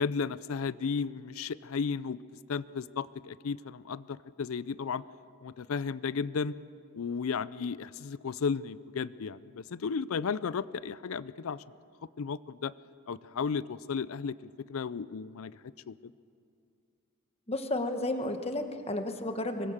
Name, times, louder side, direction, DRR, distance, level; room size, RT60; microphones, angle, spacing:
voice 1, 0.0-2.2 2.5-5.0 5.4-6.5 6.9-11.6 12.2-12.7 13.1-16.0, left 5 dB, 75° left, 18 dB, 0.5 m, -34 dB
voice 2, 17.5-19.7, left 1 dB, 30° left, 6 dB, 1.3 m, -32 dB
25.0 x 20.5 x 7.3 m, 2.5 s
head